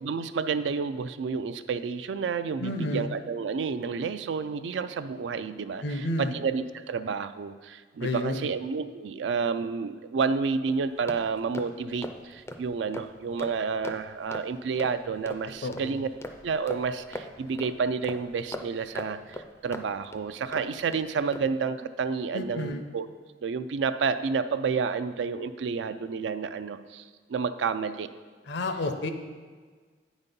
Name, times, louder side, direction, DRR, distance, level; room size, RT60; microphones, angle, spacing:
voice 1, 0.0-16.1 16.4-23.1 23.4-27.0 27.3-28.1, right 5 dB, 80° right, 11 dB, 0.4 m, -30 dB
voice 2, 2.6-3.1 5.8-6.4 8.0-8.5 15.6-16.0 22.3-22.8 28.5-29.1, left 1 dB, 70° left, 7 dB, 0.6 m, -30 dB
sound 1, 10.7-21.0 21.3-21.6, left 1 dB, 15° left, 0.4 m, -42 dB
9.0 x 4.1 x 5.3 m, 1.5 s
head